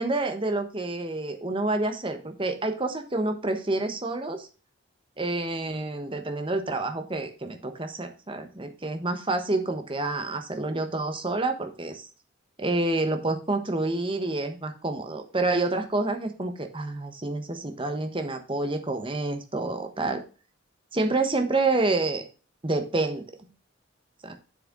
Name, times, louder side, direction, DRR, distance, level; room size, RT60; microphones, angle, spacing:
voice 1, 0.0-4.5 5.2-12.1 12.6-20.2 20.9-22.2 22.6-23.5 24.2-24.3, right 2 dB, 25° right, 6 dB, 1.1 m, -28 dB
7.5 x 6.7 x 3.7 m, 0.35 s
head